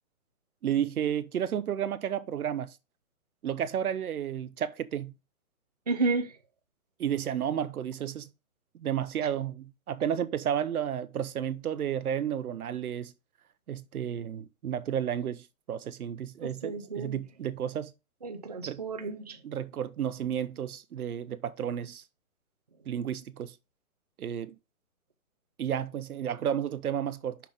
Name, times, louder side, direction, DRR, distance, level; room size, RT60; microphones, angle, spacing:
voice 1, 0.6-2.7 3.4-5.1 7.0-8.3 8.8-13.1 13.7-17.9 18.6-18.8 19.4-22.0 22.9-23.5 24.2-24.6 25.6-27.4, right 9 dB, 90° right, 0.9 m, -32 dB
voice 2, 5.9-6.3 16.4-17.2 18.2-19.4, right 3 dB, 30° right, 0.6 m, -31 dB
6.2 x 5.9 x 3.5 m
hypercardioid pair, 180°, 43 cm